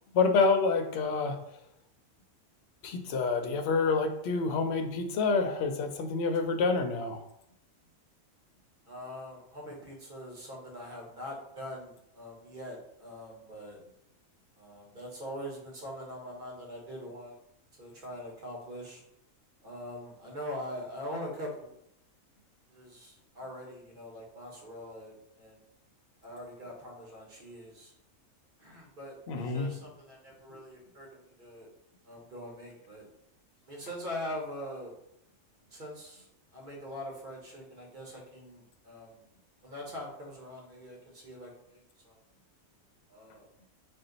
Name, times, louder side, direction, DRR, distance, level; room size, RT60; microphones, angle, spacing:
voice 1, 0.1-1.4 2.8-7.2 29.3-29.7, left 4 dB, 65° left, 6 dB, 0.7 m, -27 dB
voice 2, 8.9-13.8 14.6-17.3 17.8-19.0 19.6-21.7 22.7-25.6 26.2-27.9 28.6-31.1 31.4-31.7 32.0-33.0 33.7-34.9 35.7-39.2 39.6-42.2 43.1-43.5, equal, 40° right, -2 dB, 1.1 m, -43 dB
4.2 x 2.2 x 3.8 m, 0.76 s
omnidirectional pair, 1.4 m